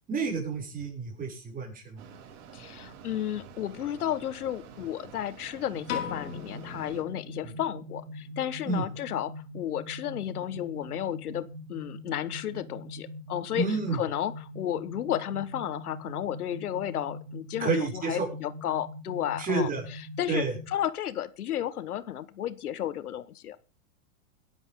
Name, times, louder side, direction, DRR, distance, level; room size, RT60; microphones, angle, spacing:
voice 1, 0.1-2.0 7.4-7.5 8.7-8.8 13.6-14.0 17.6-18.3 19.4-19.8 20.3-20.5, right 4 dB, 20° right, 1 dB, 6.4 m, -29 dB
Mechanisms, 2.0-7.0, right 7 dB, 60° right, 5.3 m, -49 dB
voice 2, 2.5-19.7 20.2-23.6, left 11 dB, 90° left, 15 dB, 1.3 m, -33 dB
sound 1, 5.7-20.7, equal, 90° right, 2.8 m, -43 dB
Piano, 5.9-8.1, left 9 dB, 70° left, 5.3 m, -38 dB
21.5 x 11.0 x 3.7 m, 0.34 s
hypercardioid pair, 140°, 43 cm